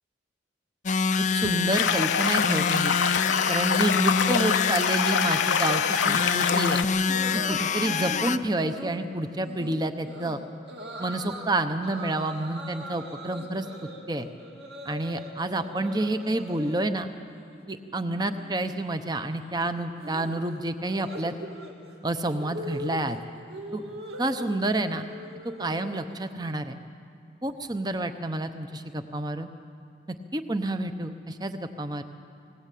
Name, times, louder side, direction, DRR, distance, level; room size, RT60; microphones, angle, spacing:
sound 1, 0.9-8.4, left 6 dB, 40° left, 0.5 m, -26 dB
voice 1, 1.2-3.0 3.5-6.8 7.3-10.4 11.0-13.7 14.1-14.3 14.8-17.1 17.7-21.3 22.0-23.2 23.7-23.8 24.2-25.0 25.6-26.8 27.4-29.5 30.1-32.0, right 2 dB, 20° right, 9 dB, 0.8 m, -29 dB
sound 2, 1.7-6.8, left 6 dB, 80° left, 0.7 m, -26 dB
sound 3, 7.1-8.2 8.6-9.0 9.4-9.7 10.0-10.3 10.7-11.5 11.8-15.3 15.6-16.9 17.2-17.6 17.9-26.1, right 1 dB, 55° right, 3.0 m, -41 dB
19.5 x 19.5 x 8.5 m, 2.7 s
head